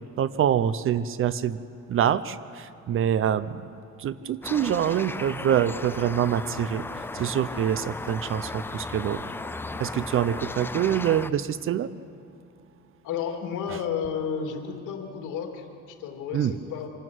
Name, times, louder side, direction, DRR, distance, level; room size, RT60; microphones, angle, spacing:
voice 1, 0.2-1.6 1.9-3.7 4.0-6.8 7.1-9.2 9.8-11.9 16.3-16.6, right 9 dB, 40° right, 16 dB, 0.6 m, -25 dB
sound 1, 4.4-11.3, left 2 dB, 5° left, 0.4 m, -36 dB
voice 2, 13.0-16.9, left 7 dB, 65° left, 3 dB, 2.9 m, -32 dB
25.5 x 12.5 x 9.3 m, 2.5 s
cardioid pair, 130°, 32 cm